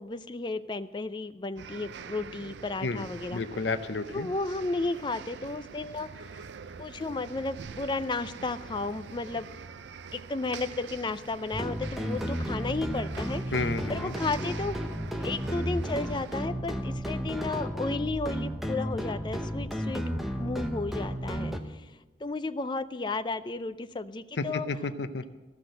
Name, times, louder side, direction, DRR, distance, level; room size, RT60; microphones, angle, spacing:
voice 1, 0.0-3.4 4.1-6.5 6.8-9.5 10.1-14.8 15.2-21.9 22.2-24.7, left 3 dB, 25° left, 12 dB, 0.4 m, -33 dB
sound 1, 1.6-16.5, right 5 dB, 75° right, 0.5 m, -45 dB
voice 2, 3.3-4.3 13.5-14.2 24.4-25.2, left 3 dB, 70° left, 11 dB, 0.6 m, -31 dB
sound 2, 11.5-21.6, equal, ahead, 0.8 m, -33 dB
14.5 x 5.9 x 7.8 m, 1.2 s
head